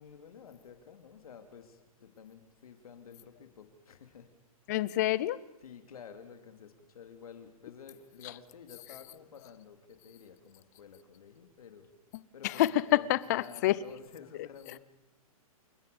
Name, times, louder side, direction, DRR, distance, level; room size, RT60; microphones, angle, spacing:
voice 1, 0.0-4.3 5.6-11.9 12.3-12.6 12.9-14.8, left 7 dB, 70° left, 8 dB, 3.3 m, -51 dB
voice 2, 4.7-5.4 8.2-8.3 12.4-13.8, left 15 dB, 30° left, 19 dB, 0.7 m, -27 dB
29.0 x 14.5 x 7.1 m, 0.98 s
hypercardioid pair, 165°, 19 cm